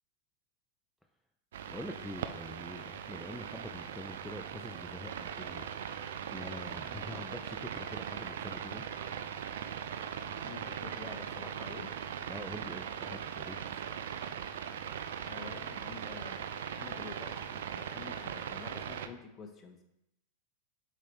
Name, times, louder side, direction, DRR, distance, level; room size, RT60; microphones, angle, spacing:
sound 1, 1.5-19.1, right 8 dB, 70° right, 0.4 m, -40 dB
voice 1, 1.7-5.7 6.3-8.8 12.3-13.8, left 1 dB, ahead, 3 dB, 0.5 m, -45 dB
voice 2, 10.2-11.9 15.2-16.5 16.8-19.8, left 5 dB, 30° left, 5 dB, 1.0 m, -48 dB
7.5 x 4.1 x 3.4 m, 0.85 s
hypercardioid pair, 90°, 0 cm